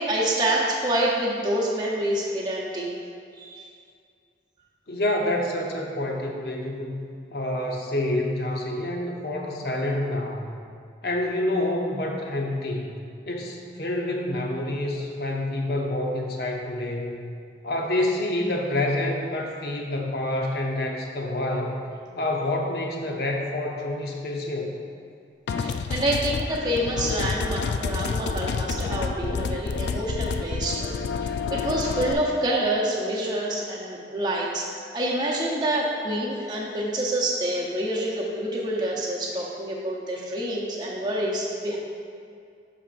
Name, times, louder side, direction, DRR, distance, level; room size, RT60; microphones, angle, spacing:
voice 1, 0.0-3.0 3.4-3.6 25.5-30.9 31.2-34.6 34.9-41.8, right 1 dB, 25° right, -4 dB, 0.8 m, -27 dB
voice 2, 4.9-6.9 7.3-10.5 11.0-13.0 13.3-17.2 17.6-21.8 22.2-24.7, left 1 dB, 65° left, 0 dB, 0.8 m, -27 dB
sound 1, 25.5-32.1, left 5 dB, 80° left, 0.3 m, -29 dB
11.5 x 4.3 x 2.5 m, 2.3 s
head